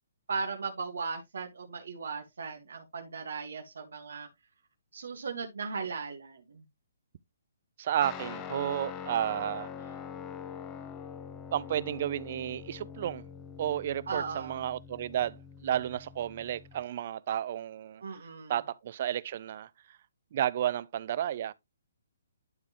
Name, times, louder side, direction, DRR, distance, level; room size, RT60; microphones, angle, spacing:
voice 1, 0.3-4.3 4.9-6.6 14.1-14.6 18.0-18.5, right 5 dB, 80° right, 1.7 m, -37 dB
voice 2, 7.8-9.7 11.5-13.2 13.6-18.0 18.5-19.7 20.3-21.5, right 11 dB, 50° right, 0.4 m, -32 dB
Guitar, 8.0-16.8, left 7 dB, 25° left, 1.0 m, -44 dB
12.0 x 4.0 x 3.0 m
hypercardioid pair, 145°, 0 cm